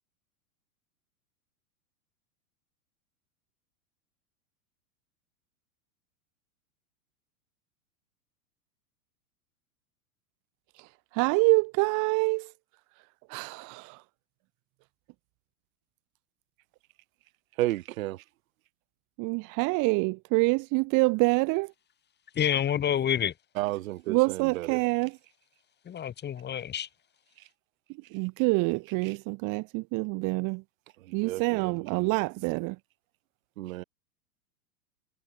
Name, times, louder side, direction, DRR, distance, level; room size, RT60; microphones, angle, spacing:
voice 1, 11.1-12.5 13.3-14.0 19.2-21.7 24.1-25.2 28.1-30.6 31.1-32.8, right 28 dB, 45° right, 1.3 m, -26 dB
voice 2, 17.6-18.2 23.6-24.8 29.0-29.1 31.1-32.1 33.6-33.8, right 17 dB, 65° right, 2.2 m, -33 dB
voice 3, 22.4-23.3 25.9-26.9, left 9 dB, 25° left, 2.0 m, -28 dB
hypercardioid pair, 110°, 44 cm